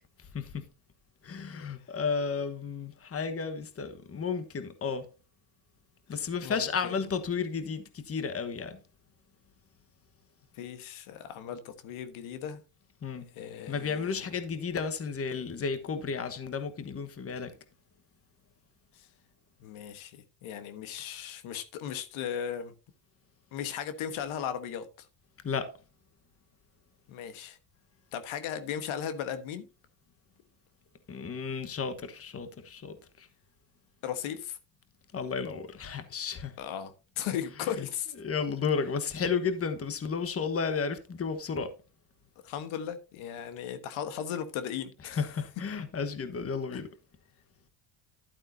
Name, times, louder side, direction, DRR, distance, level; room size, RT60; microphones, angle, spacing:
voice 1, 1.2-5.1 6.1-8.8 13.0-13.3 13.7-17.5 25.4-25.7 31.1-33.3 35.1-36.5 37.8-37.9 38.2-41.7 45.0-46.9, left 5 dB, 25° left, 1.3 m, -33 dB
voice 2, 6.4-6.9 10.6-12.6 13.3-14.1 19.0-19.1 19.6-22.7 23.5-24.9 27.1-27.6 28.1-29.7 34.0-34.6 36.6-38.1 42.4-45.2, left 9 dB, 70° left, 1.4 m, -36 dB
11.5 x 8.7 x 2.7 m
cardioid pair, 100°, 50 cm